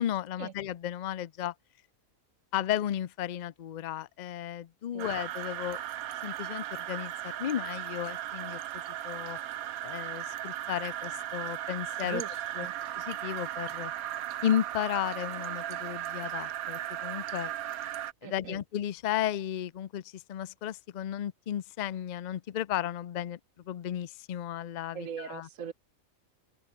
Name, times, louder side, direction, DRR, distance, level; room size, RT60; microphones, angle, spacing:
voice 1, 0.0-1.5 2.5-5.8 6.2-8.6 9.0-9.4 9.8-12.2 12.6-12.7 13.0-13.9 14.4-17.5 18.2-23.4 23.7-25.5, left 11 dB, 90° left, 0.4 m, -34 dB
sound 1, 5.0-18.1, right 12 dB, 85° right, 1.2 m, -37 dB
voice 2, 12.0-12.7 18.2-18.6 24.9-25.7, right 7 dB, 65° right, 1.5 m, -40 dB
omnidirectional pair, 1.5 m